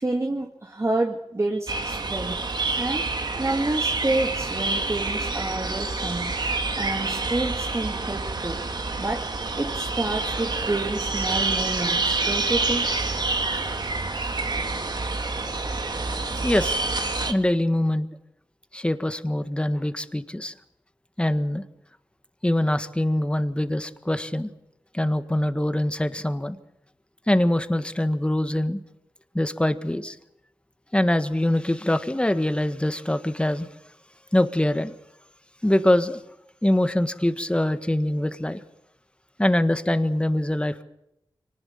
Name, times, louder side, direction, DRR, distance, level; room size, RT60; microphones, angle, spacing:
voice 1, 0.0-2.4 2.7-6.3 6.8-8.6 9.0-13.0, right 2 dB, 30° right, 2 dB, 2.5 m, -29 dB
sound 1, 1.7-17.3, right 3 dB, 50° right, 2.2 m, -27 dB
voice 2, 16.4-16.8 17.2-18.1 18.7-20.5 21.2-21.6 22.4-24.5 24.9-26.6 27.3-28.8 29.3-30.2 30.9-33.7 34.3-34.9 35.6-36.2 36.6-38.6 39.4-40.8, left 1 dB, 10° left, 10 dB, 1.6 m, -23 dB
24.0 x 19.5 x 7.2 m, 0.83 s
cardioid pair, 45°, 9 cm